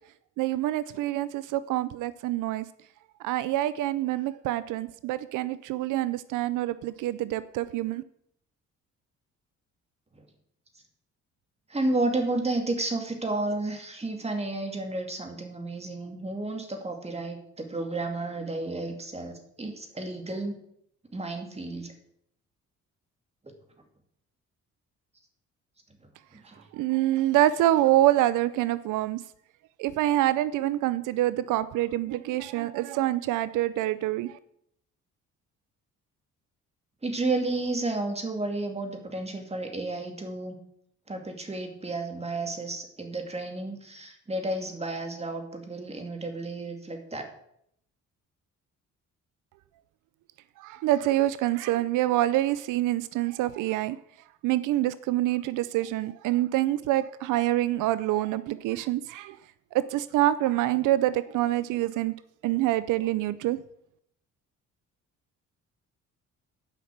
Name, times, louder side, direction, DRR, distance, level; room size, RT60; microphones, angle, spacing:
voice 1, 0.4-2.7 3.2-8.0 26.7-29.2 29.8-34.3 50.6-54.0 54.4-59.4 59.7-62.2 62.4-63.6, right 14 dB, 90° right, 16 dB, 0.5 m, -26 dB
voice 2, 11.7-20.6 21.1-21.9 26.3-26.6 37.0-40.6 41.1-47.2, right 2 dB, 20° right, 4 dB, 2.5 m, -32 dB
9.9 x 5.9 x 7.8 m, 0.72 s
cardioid pair, 90°, 30 cm